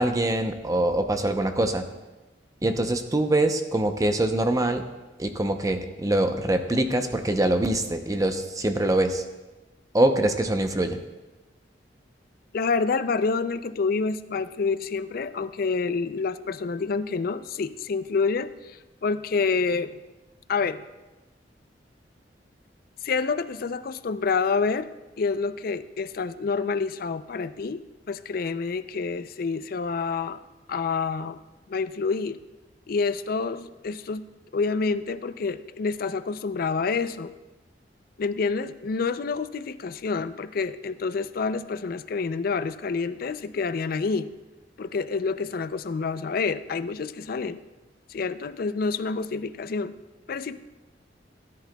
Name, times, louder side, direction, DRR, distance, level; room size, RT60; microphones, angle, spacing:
voice 1, 0.0-1.8 2.6-4.9 5.2-9.2 9.9-11.0, right 1 dB, 20° right, 6 dB, 0.7 m, -24 dB
voice 2, 12.5-20.0 20.5-20.8 23.0-24.9 25.2-27.8 28.1-30.4 30.7-31.4 31.7-32.4 32.9-37.3 38.2-44.3 44.8-47.6 48.1-49.9 50.3-50.6, left 4 dB, 55° left, 13 dB, 0.4 m, -28 dB
17.0 x 10.5 x 2.3 m, 1.1 s
head